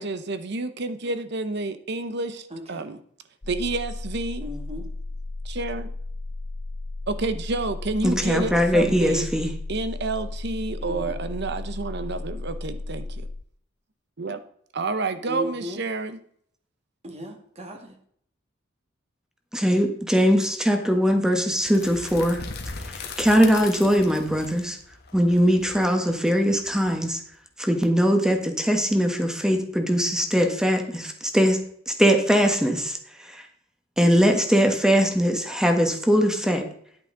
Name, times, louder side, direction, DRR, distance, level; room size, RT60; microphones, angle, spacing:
voice 1, 0.0-2.4 2.7-3.0 3.5-4.5 5.5-5.9 7.1-9.3 9.7-13.1 14.2-14.4 14.7-16.2, right 3 dB, 55° right, 11 dB, 0.8 m, -29 dB
voice 2, 2.5-2.9 4.4-4.9 10.8-11.1 15.3-15.8 17.0-17.9, left 1 dB, 30° right, 2 dB, 1.9 m, -36 dB
sound 1, 3.4-13.4, left 2 dB, 25° left, 0.5 m, -34 dB
voice 3, 8.0-9.5 19.5-22.4 22.9-24.8 25.1-27.2 27.6-31.6 31.9-33.0 33.3-33.4 34.0-36.7, equal, 5° right, 4 dB, 1.4 m, -21 dB
sound 2, 21.5-27.3, left 4 dB, 55° left, 1.3 m, -39 dB
10.5 x 8.8 x 3.9 m, 0.65 s
head